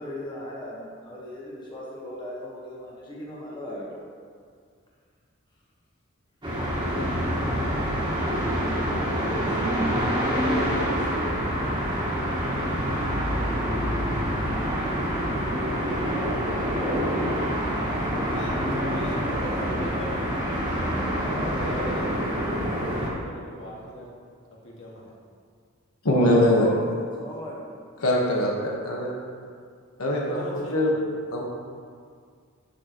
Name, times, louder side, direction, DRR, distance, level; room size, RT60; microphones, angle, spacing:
voice 1, 0.0-4.0 26.1-26.8 27.2-27.8, equal, 20° left, -5 dB, 1.3 m, -36 dB
sound 1, 6.4-23.1, equal, 20° right, 1.6 m, -26 dB
voice 2, 18.0-20.3 20.9-22.5 22.8-24.2 24.6-25.1 28.1-28.6 30.0-31.1, equal, 60° left, -4 dB, 1.9 m, -40 dB
voice 3, 26.0-26.7 28.0-29.1 30.0-30.9 31.3-31.4, left 1 dB, 90° left, -2 dB, 1.4 m, -22 dB
11.5 x 6.4 x 3.1 m, 2.1 s
head